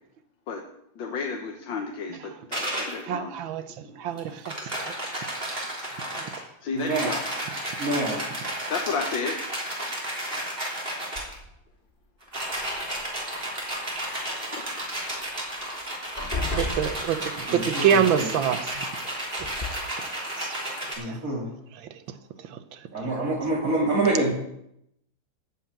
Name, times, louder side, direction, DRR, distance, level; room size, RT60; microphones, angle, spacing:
voice 1, 1.0-3.3 6.6-7.2 8.7-9.4 14.5-14.6, left 5 dB, 75° left, 3 dB, 1.8 m, -32 dB
sound 1, 2.5-3.0 4.2-6.4 6.8-11.3 12.2-21.0, right 1 dB, 25° right, 3.6 m, -32 dB
voice 2, 3.1-3.6 4.0-4.3 4.8-4.9 6.2-6.3 16.5-18.7 20.4-20.5 21.1-21.2, right 8 dB, 80° right, 10 dB, 1.6 m, -25 dB
voice 3, 6.7-7.1 7.8-8.2 17.5-18.3 21.0-21.5 22.9-24.3, right 2 dB, 45° right, -5 dB, 3.0 m, -26 dB
sound 2, 11.2-11.7 12.6-13.4 15.2-15.3 15.6-15.8 16.2-17.6 18.7-18.8 19.4-19.7, left 3 dB, 25° left, 2.9 m, -34 dB
14.0 x 5.7 x 8.8 m, 0.77 s
omnidirectional pair, 2.1 m